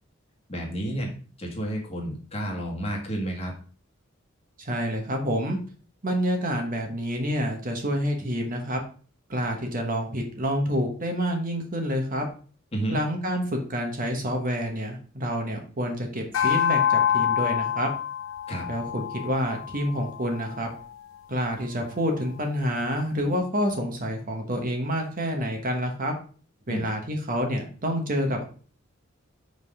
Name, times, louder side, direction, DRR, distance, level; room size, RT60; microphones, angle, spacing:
voice 1, 0.5-1.1 1.4-3.5 12.7-13.0 18.5-18.7 26.7-26.8, right 1 dB, 30° left, 0 dB, 1.6 m, -30 dB
voice 2, 4.6-5.6 6.0-8.8 9.3-12.2 12.9-17.9 18.7-20.7 21.3-26.1 26.7-28.4, equal, 40° right, 3 dB, 1.2 m, -28 dB
sound 1, 16.3-20.9, left 9 dB, 65° left, 0.4 m, -27 dB
5.4 x 3.9 x 4.8 m, 0.40 s
head